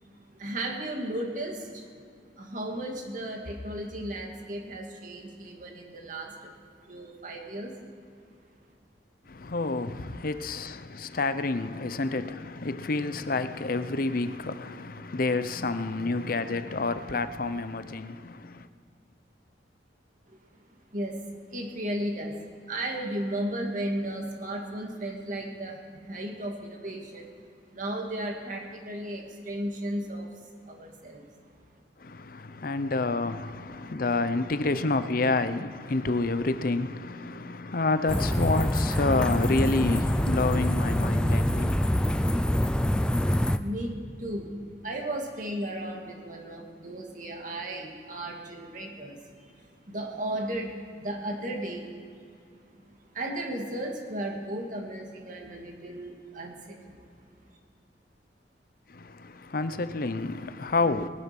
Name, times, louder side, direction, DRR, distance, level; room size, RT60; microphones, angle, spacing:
voice 1, 0.0-2.0 2.4-6.6 6.8-7.7 20.3-20.6 20.9-21.2 21.5-22.4 22.7-27.4 27.7-31.5 43.6-43.9 44.2-52.3 53.1-57.0, right 1 dB, 45° right, 2.2 m, -35 dB
voice 2, 9.3-18.7 32.0-42.4 58.9-61.1, left 3 dB, 55° left, 0.7 m, -29 dB
sound 1, 38.1-43.6, equal, 5° left, 0.4 m, -25 dB
20.0 x 10.5 x 6.0 m
head